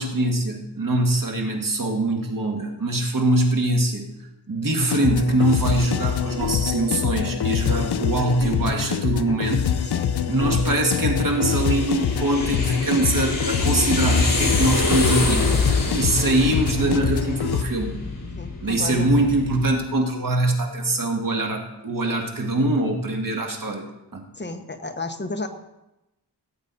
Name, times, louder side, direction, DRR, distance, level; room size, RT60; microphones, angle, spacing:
voice 1, 0.0-4.1 4.5-9.7 10.3-15.6 15.9-17.9 18.6-23.9 24.1-24.3, right 2 dB, 50° right, 2 dB, 2.0 m, -23 dB
sound 1, 4.8-17.6, left 8 dB, 70° left, 0.7 m, -25 dB
voice 2, 9.8-10.1 15.8-16.0 18.4-19.2 24.3-25.5, left 2 dB, 25° left, 7 dB, 1.0 m, -33 dB
sound 2, 11.2-19.7, left 2 dB, 55° left, 3.0 m, -26 dB
17.0 x 8.1 x 4.1 m, 0.94 s
wide cardioid pair, 90°, 41 cm